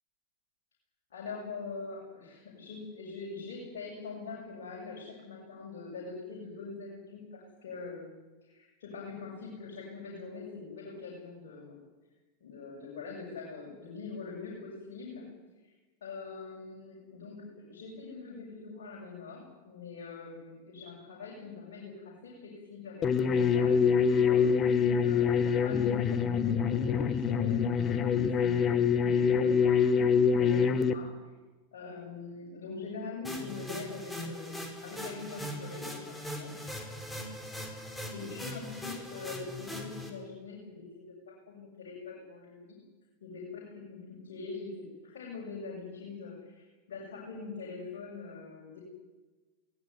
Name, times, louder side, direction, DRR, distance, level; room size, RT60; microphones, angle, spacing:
voice 1, 1.1-8.1 8.4-11.8 12.4-15.3 15.6-15.7 16.0-24.5 25.0-31.1 31.7-36.5 37.8-42.8 43.2-48.8, left 4 dB, 60° left, -2 dB, 7.7 m, -43 dB
sound 1, 23.0-30.9, left 6 dB, 30° left, 1.3 m, -25 dB
trumpet delay loop, 33.2-40.1, left 1 dB, 5° left, 4.8 m, -40 dB
22.5 x 18.5 x 9.8 m, 1.2 s
figure-of-eight pair, 90°, 0 cm